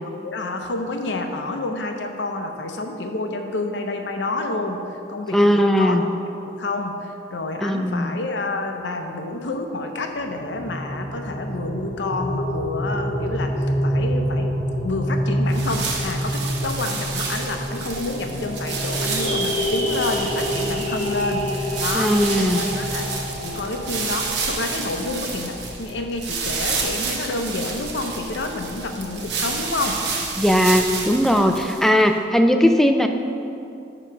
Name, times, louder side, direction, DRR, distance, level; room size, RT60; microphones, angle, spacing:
voice 1, 0.0-6.0 6.5-13.5 13.8-14.5 14.8-23.1 23.4-30.0, left 2 dB, 90° left, 5 dB, 0.7 m, -29 dB
voice 2, 5.3-6.0 7.6-8.2 21.9-22.6 30.4-33.1, equal, ahead, 6 dB, 0.3 m, -18 dB
sound 1, 10.2-24.9, equal, 35° left, 0.7 m, -27 dB
sound 2, 15.5-32.0, right 4 dB, 70° right, 0.9 m, -30 dB
sound 3, 18.8-23.6, right 1 dB, 40° right, 1.4 m, -34 dB
8.9 x 3.0 x 5.9 m, 2.6 s
head